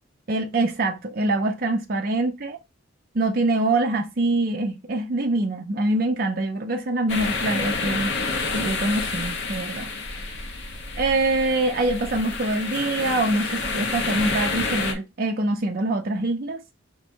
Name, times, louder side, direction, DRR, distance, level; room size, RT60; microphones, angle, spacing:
voice 1, 0.3-2.6 3.1-8.1 8.5-9.9 11.0-16.6, right 2 dB, 45° right, 0.5 m, -24 dB
sound 1, 7.1-14.9, left 3 dB, 60° left, 1.0 m, -29 dB
5.2 x 2.2 x 4.4 m
head